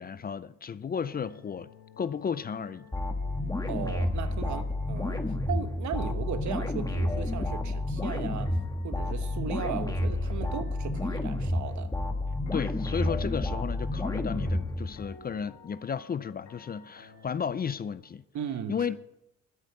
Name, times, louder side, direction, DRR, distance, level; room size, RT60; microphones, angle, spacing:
voice 1, 0.0-1.7 2.0-2.9 12.5-18.2 18.7-19.0, left 7 dB, 30° left, 0.5 m, -33 dB
sound 1, 1.0-17.9, left 7 dB, 70° left, 2.3 m, -53 dB
sound 2, 2.9-15.2, left 1 dB, 10° left, 1.4 m, -30 dB
voice 2, 3.7-8.5 8.8-11.9 18.3-18.8, right 8 dB, 70° right, 1.2 m, -37 dB
12.5 x 6.5 x 9.1 m
cardioid pair, 90°, 30 cm